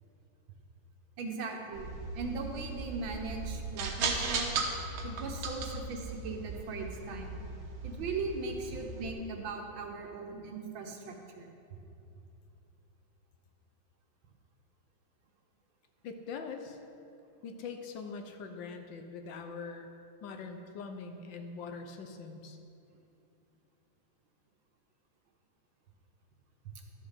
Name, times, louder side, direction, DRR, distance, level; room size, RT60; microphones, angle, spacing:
voice 1, 1.2-4.6 5.0-7.3 7.8-11.5, right 4 dB, 70° right, 2 dB, 1.8 m, -39 dB
sound 1, 1.7-9.1, right 3 dB, 90° right, 1.8 m, -37 dB
voice 2, 16.0-16.8 17.4-19.9 20.2-22.6, left 5 dB, 70° left, 6 dB, 1.4 m, -42 dB
12.0 x 7.2 x 5.7 m, 2.7 s
omnidirectional pair, 2.2 m